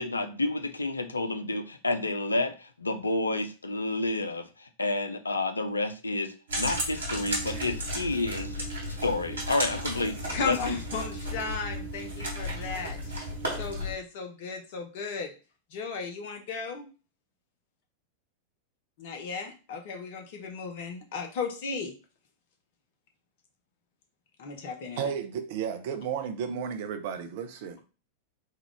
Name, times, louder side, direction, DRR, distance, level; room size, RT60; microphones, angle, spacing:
voice 1, 0.0-8.6 8.9-10.2 10.4-10.8, left 2 dB, 80° left, 8 dB, 0.4 m, -30 dB
sound 1, 6.5-13.9, equal, 70° right, 1.2 m, -34 dB
voice 2, 10.3-15.3 15.7-16.9 19.0-21.9 24.4-25.1, left 5 dB, 50° left, 4 dB, 0.7 m, -35 dB
voice 3, 25.0-27.9, right 7 dB, 50° right, 7 dB, 0.6 m, -33 dB
3.6 x 2.3 x 3.4 m, 0.33 s
figure-of-eight pair, 90°, 0 cm